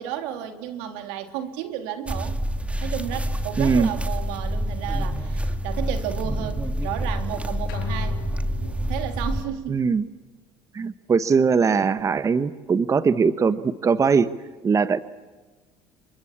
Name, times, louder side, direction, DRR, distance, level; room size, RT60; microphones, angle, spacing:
voice 1, 0.0-2.4 2.8-8.2 8.5-9.8, right 10 dB, 80° right, 8 dB, 3.3 m, -33 dB
sound 1, 2.1-9.5, equal, 10° right, 2.1 m, -27 dB
voice 2, 3.6-3.9 9.7-10.0 10.7-14.3 14.6-15.0, right 5 dB, 30° right, 14 dB, 1.0 m, -21 dB
sound 2, 7.7-9.1, left 10 dB, 90° left, 6.7 m, -36 dB
28.0 x 24.0 x 8.7 m, 1.3 s
supercardioid pair, 95°, 11 cm